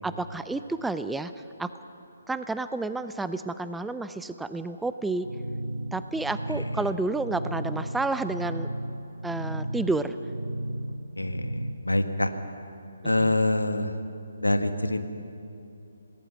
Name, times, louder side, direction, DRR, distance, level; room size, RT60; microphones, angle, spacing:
voice 1, 0.0-1.3 1.6-1.7 2.3-5.3 5.9-8.7 9.2-10.2 13.0-13.3, right 3 dB, 5° right, 11 dB, 0.5 m, -30 dB
sound 1, 5.2-11.7, right 1 dB, 85° right, 1.3 m, -34 dB
voice 2, 11.2-12.3 13.0-13.9 14.4-15.1, left 1 dB, 80° left, 7 dB, 1.7 m, -25 dB
28.0 x 19.0 x 5.9 m, 2.7 s
figure-of-eight pair, 140°, 0 cm